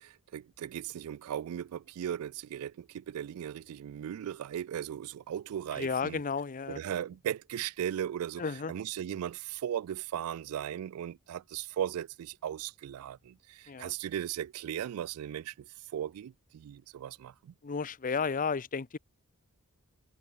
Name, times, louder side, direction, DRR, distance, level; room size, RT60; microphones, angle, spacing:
voice 1, 0.0-6.2 6.7-8.4 8.7-17.5, right 10 dB, 75° right, 0.3 m, -37 dB
voice 2, 5.7-6.8 8.4-8.7 13.7-13.9 17.6-19.0, left 5 dB, 40° left, 0.6 m, -33 dB
head